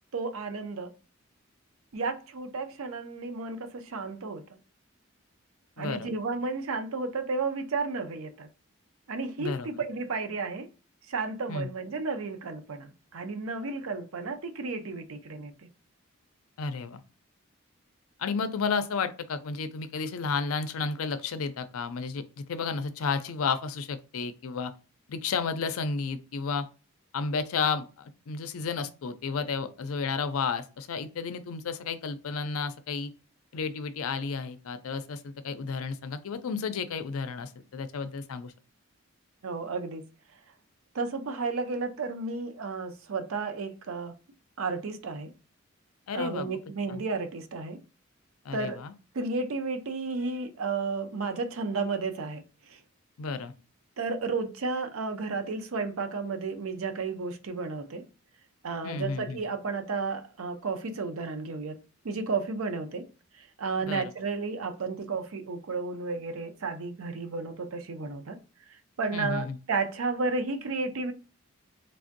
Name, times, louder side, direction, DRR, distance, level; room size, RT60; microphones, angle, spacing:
voice 1, 0.1-0.9 1.9-4.4 5.8-8.5 9.1-10.7 11.1-15.5 39.4-40.0 40.9-44.1 44.6-45.3 46.1-47.8 48.5-48.8 49.1-52.4 52.7-52.8 54.0-58.0 58.6-61.8 62.0-63.1 63.6-68.4 69.0-71.1, right 4 dB, 80° right, 0.6 m, -32 dB
voice 2, 5.8-6.1 9.4-9.7 11.5-11.7 16.6-17.0 18.2-24.7 25.1-26.7 27.1-33.1 33.5-38.5 46.1-46.5 46.9-47.0 48.4-48.9 53.2-53.5 58.8-59.4 63.8-64.1 69.1-69.6, left 5 dB, 85° left, 0.4 m, -32 dB
3.3 x 2.5 x 2.5 m
head